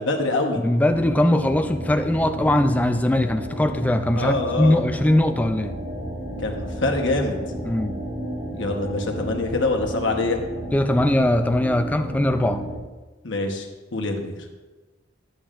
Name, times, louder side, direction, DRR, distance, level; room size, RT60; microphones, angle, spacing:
voice 1, 0.0-0.6 4.2-4.8 6.4-7.4 8.5-10.4 13.2-13.7 13.9-14.4, left 2 dB, 75° left, 2 dB, 1.1 m, -25 dB
voice 2, 0.6-5.8 7.6-8.0 10.7-12.7, left 1 dB, 10° left, 7 dB, 0.3 m, -21 dB
sound 1, 0.9-12.8, right 1 dB, 60° right, 1.5 m, -33 dB
10.0 x 7.8 x 2.5 m, 1.2 s
head